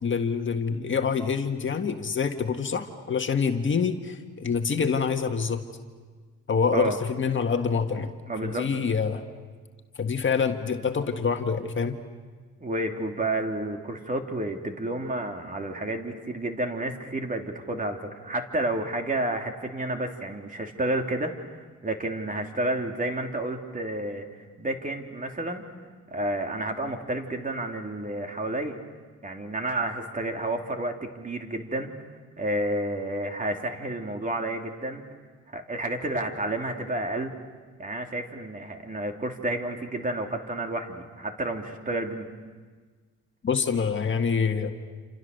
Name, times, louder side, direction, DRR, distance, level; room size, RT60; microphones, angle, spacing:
voice 1, 0.0-5.6 6.5-8.1 8.4-9.2 10.0-12.0 43.4-44.7, left 5 dB, 40° left, 5 dB, 1.8 m, -26 dB
voice 2, 8.3-8.7 12.6-24.3 24.6-25.7 26.1-28.8 29.2-31.9 32.4-35.0 35.5-37.3 37.8-42.3, right 1 dB, 25° right, 3 dB, 3.1 m, -30 dB
29.0 x 27.0 x 6.7 m, 1.5 s
cardioid pair, 90°, 30 cm